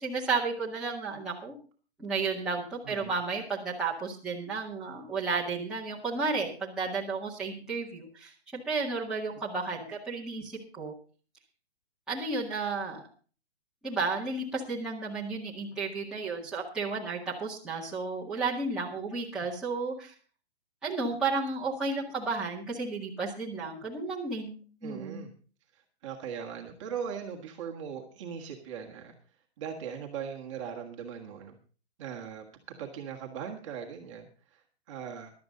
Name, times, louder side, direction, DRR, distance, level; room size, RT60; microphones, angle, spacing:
voice 1, 0.0-1.6 2.0-10.9 12.1-13.1 13.8-20.1 20.8-25.2, right 4 dB, ahead, -8 dB, 1.8 m, -33 dB
voice 2, 2.8-3.2 24.8-25.3 25.7-29.1 29.6-31.6 32.0-35.3, right 7 dB, 30° right, 1 dB, 1.7 m, -40 dB
15.5 x 12.0 x 3.8 m, 0.38 s
hypercardioid pair, 170°, 33 cm